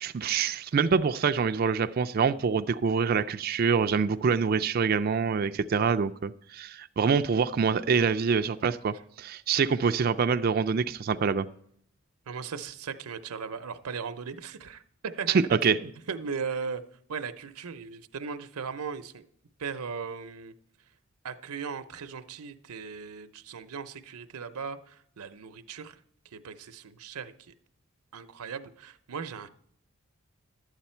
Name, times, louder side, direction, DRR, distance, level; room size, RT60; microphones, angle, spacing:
voice 1, 0.0-11.5 15.6-15.8, right 5 dB, 40° right, 9 dB, 0.3 m, -26 dB
voice 2, 12.3-16.8 17.1-19.3 19.6-20.5 21.2-27.5 28.1-29.5, right 5 dB, 85° right, 10 dB, 0.6 m, -38 dB
12.0 x 8.1 x 4.3 m, 0.71 s
head